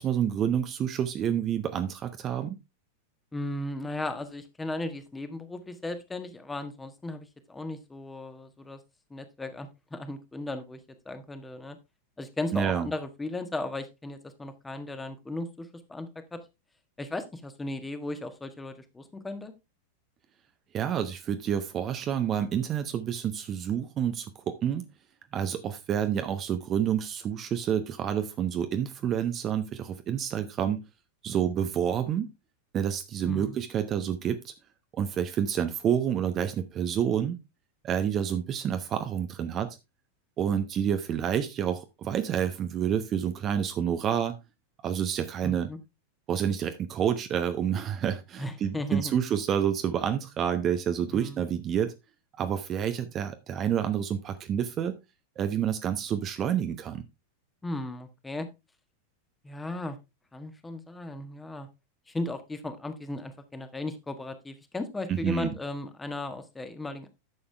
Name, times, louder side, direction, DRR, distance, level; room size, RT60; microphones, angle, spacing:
voice 1, 0.0-2.6 12.5-12.9 20.7-24.9 25.3-30.8 31.2-32.3 32.7-34.5 34.9-37.4 37.8-39.8 40.4-44.4 44.8-45.7 46.3-51.9 52.4-55.0 55.4-57.0 65.1-65.5, right 9 dB, 30° right, 8 dB, 0.9 m, -28 dB
voice 2, 3.3-8.8 9.1-11.8 12.2-16.4 17.0-19.5 33.2-33.6 45.4-45.8 48.4-49.1 51.1-51.4 57.6-58.5 59.4-60.0 60.3-61.7 62.1-67.1, left 2 dB, 10° left, 9 dB, 1.5 m, -36 dB
11.0 x 7.0 x 3.4 m, 0.24 s
figure-of-eight pair, 90°, 0 cm